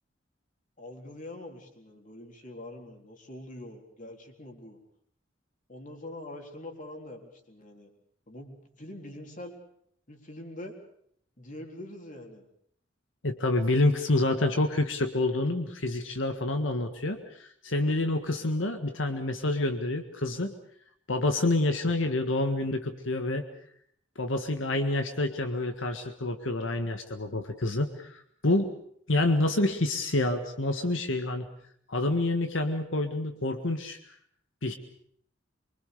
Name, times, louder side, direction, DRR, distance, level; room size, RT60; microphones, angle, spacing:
voice 1, 0.8-4.8 5.7-7.9 8.3-9.6 10.1-10.8 11.4-12.5, left 1 dB, 45° left, 3 dB, 3.9 m, -44 dB
voice 2, 13.2-20.5 21.1-23.4 24.2-28.7 29.1-31.5 31.9-34.0 34.6-34.7, left 2 dB, 90° left, 6 dB, 1.7 m, -28 dB
24.5 x 24.0 x 6.8 m, 0.66 s
head